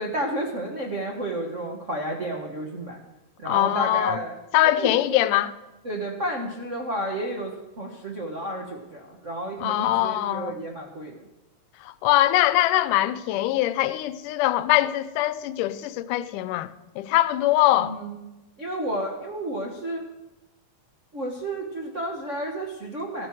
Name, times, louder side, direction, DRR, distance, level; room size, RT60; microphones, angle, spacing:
voice 1, 0.0-3.0 3.4-4.4 4.8-5.2 5.8-7.5 7.8-11.1 17.8-18.2 18.6-20.0 21.1-23.3, right 1 dB, 50° right, 0.8 m, -31 dB
voice 2, 3.5-4.2 4.5-5.5 9.6-10.6 11.8-16.7 17.0-18.0, left 14 dB, 80° left, 2.1 m, -22 dB
15.0 x 9.7 x 6.2 m
omnidirectional pair, 3.7 m